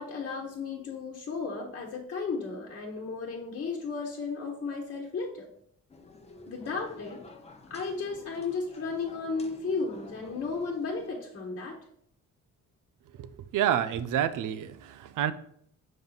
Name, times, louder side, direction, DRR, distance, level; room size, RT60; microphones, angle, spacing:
voice 1, 0.0-5.5 6.5-7.2 7.7-11.8, left 4 dB, 40° left, -2 dB, 1.2 m, -34 dB
sound 1, 5.9-11.1, left 2 dB, 20° left, 0.8 m, -51 dB
voice 2, 13.2-15.3, right 10 dB, 85° right, 13 dB, 0.6 m, -29 dB
7.3 x 5.3 x 4.0 m, 0.68 s
cardioid pair, 145°, 30 cm